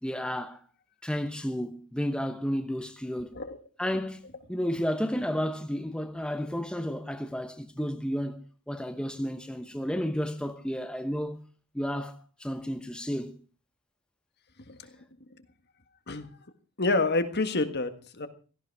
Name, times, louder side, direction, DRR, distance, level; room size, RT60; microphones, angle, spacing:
voice 1, 0.0-0.6 1.0-3.3 3.8-4.2 4.5-11.4 11.7-13.4, equal, 5° left, 1.0 m, -32 dB
voice 2, 16.8-18.3, left 3 dB, 50° left, 1.7 m, -28 dB
17.0 x 14.0 x 4.7 m
head